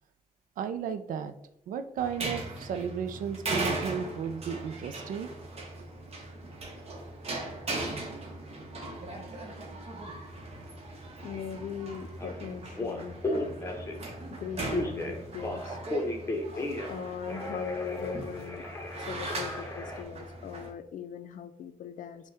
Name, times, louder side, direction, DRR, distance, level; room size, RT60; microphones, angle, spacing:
voice 1, 0.6-1.3 1.7-5.3, right 7 dB, 80° right, 10 dB, 0.4 m, -34 dB
sound 1, 2.0-20.7, right 2 dB, 45° right, 0.9 m, -38 dB
voice 2, 11.2-13.5 14.3-15.8 16.5-18.6 19.0-22.3, left 7 dB, 65° left, 11 dB, 0.4 m, -40 dB
Telephone, 12.2-12.3 12.7-14.1 14.7-17.0 17.3-20.0, left 2 dB, 20° left, 0.8 m, -34 dB
5.6 x 2.2 x 3.4 m, 0.75 s
cardioid pair, 80°, 14 cm